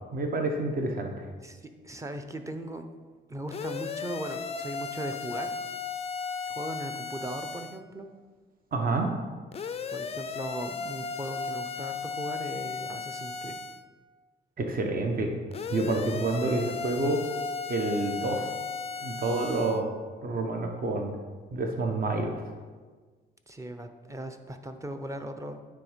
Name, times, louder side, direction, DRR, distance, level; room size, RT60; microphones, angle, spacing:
voice 1, 0.1-1.3 8.7-9.1 14.6-15.3 15.7-17.2 17.7-18.5 19.0-19.9 20.2-21.1 21.5-22.4, right 2 dB, 45° right, 3 dB, 1.0 m, -28 dB
voice 2, 1.4-2.8 3.3-5.7 6.5-8.1 9.9-13.5 23.5-25.6, right 1 dB, 15° right, 6 dB, 0.7 m, -38 dB
sound 1, 3.5-7.8 9.5-13.8 15.5-19.8, left 5 dB, 30° left, 0.4 m, -35 dB
9.2 x 3.6 x 5.1 m, 1.4 s
cardioid pair, 90°, 20 cm